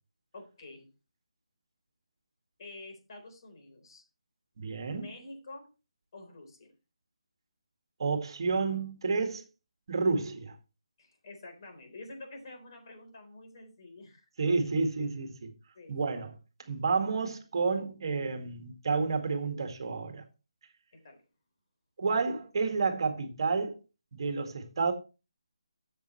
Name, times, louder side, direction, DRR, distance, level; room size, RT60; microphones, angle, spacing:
voice 1, 0.3-0.9 2.6-4.0 4.9-5.7 6.1-6.7 11.0-14.3 15.7-16.0 20.9-21.2, left 2 dB, 45° left, 3.9 m, -48 dB
voice 2, 4.6-5.1 8.0-9.4 9.9-10.6 14.4-15.5 15.9-16.3 16.7-20.2 22.0-23.8 24.1-24.9, right 4 dB, 50° right, 2.0 m, -30 dB
12.5 x 7.5 x 3.1 m
figure-of-eight pair, 160°, 3 cm